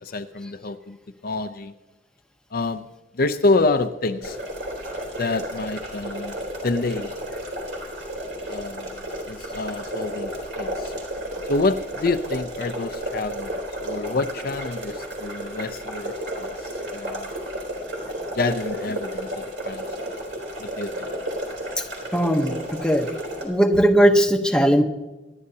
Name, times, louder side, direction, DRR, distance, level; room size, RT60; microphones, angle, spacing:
voice 1, 0.0-1.0 1.2-1.7 2.5-2.9 3.1-4.4 5.2-6.4 6.6-7.1 8.5-10.3 10.6-10.9 11.5-16.1 16.4-17.3 18.4-19.8 20.6-21.1, left 3 dB, 55° left, 0.5 m, -27 dB
sound 1, 4.2-23.4, equal, 70° right, 3.5 m, -32 dB
voice 2, 22.1-23.1 23.4-24.8, equal, 5° left, 0.9 m, -19 dB
26.5 x 11.0 x 2.8 m
head